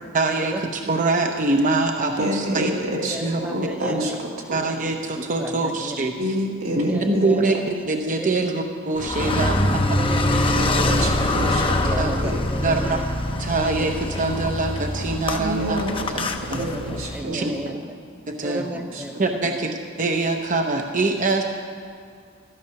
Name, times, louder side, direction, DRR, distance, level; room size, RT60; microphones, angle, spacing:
voice 1, 0.1-2.7 3.2-3.4 3.9-4.1 4.5-6.2 6.8-9.6 12.0-12.2 12.6-13.0 13.4-15.8 16.5-16.6 17.3-17.5 18.3-18.7 19.2-21.4, right 3 dB, 40° right, 3 dB, 0.8 m, -24 dB
voice 2, 2.2-4.1 4.5-4.6 6.2-7.6 10.5-11.8 12.2-12.4 15.4-17.5 18.5-19.2, equal, 85° right, -2 dB, 2.5 m, -28 dB
voice 3, 3.1-4.2 5.4-6.0 6.9-7.6 8.2-8.5 9.2-11.2 11.8-13.1 16.6-17.8 18.4-19.1 19.4-19.6, right 1 dB, 5° right, 7 dB, 0.3 m, -34 dB
Car, 9.0-17.2, left 1 dB, 25° left, 0.8 m, -24 dB
13.5 x 12.0 x 5.8 m, 2.2 s
head